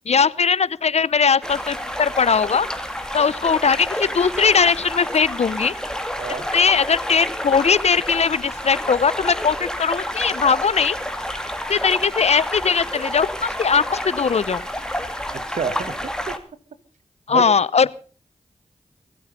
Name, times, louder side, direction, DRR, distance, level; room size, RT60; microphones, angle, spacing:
voice 1, 0.1-2.7 3.1-5.7 6.5-11.0 11.7-14.6 17.3-17.9, left 6 dB, 60° left, 21 dB, 0.6 m, -19 dB
sound 1, 1.2-15.4, right 2 dB, 45° right, 6.4 m, -46 dB
sound 2, 1.4-16.4, equal, 5° left, 2.2 m, -29 dB
voice 2, 15.3-16.4 17.3-17.5, right 5 dB, 75° right, 12 dB, 1.5 m, -29 dB
24.5 x 8.7 x 5.4 m, 0.42 s
cardioid pair, 40°, 13 cm